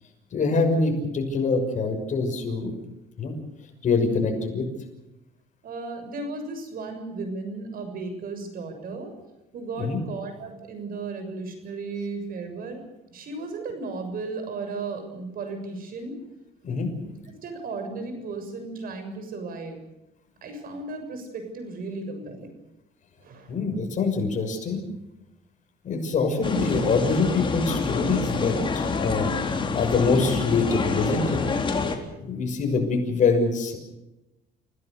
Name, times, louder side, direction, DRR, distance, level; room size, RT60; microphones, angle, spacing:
voice 1, 0.3-2.7 3.2-3.4 3.8-4.6 9.8-10.0 16.6-16.9 23.5-24.8 25.8-31.4 32.2-33.8, left 4 dB, 45° left, 4 dB, 6.3 m, -24 dB
voice 2, 5.6-9.1 9.5-12.8 13.1-16.2 17.3-19.9 20.4-22.6 23.2-23.6, right 3 dB, 60° right, 7 dB, 7.0 m, -35 dB
sound 1, 26.4-32.0, left 4 dB, 30° left, 3.7 m, -27 dB
30.0 x 17.5 x 6.8 m, 0.94 s
cardioid pair, 110°, 17 cm